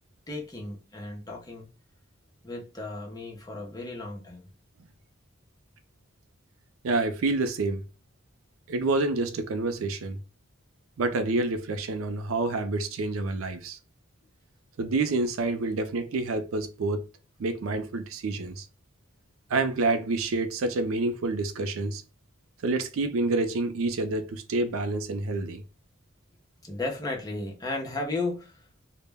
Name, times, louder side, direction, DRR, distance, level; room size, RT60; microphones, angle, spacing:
voice 1, 0.3-1.7 2.4-4.4 26.6-28.6, left 2 dB, 20° left, 0.6 m, -34 dB
voice 2, 6.8-7.8 8.7-10.2 11.0-13.8 14.8-17.0 17.4-18.7 19.5-22.0 22.6-25.6, right 3 dB, 85° right, 0.4 m, -28 dB
2.2 x 2.1 x 3.3 m
head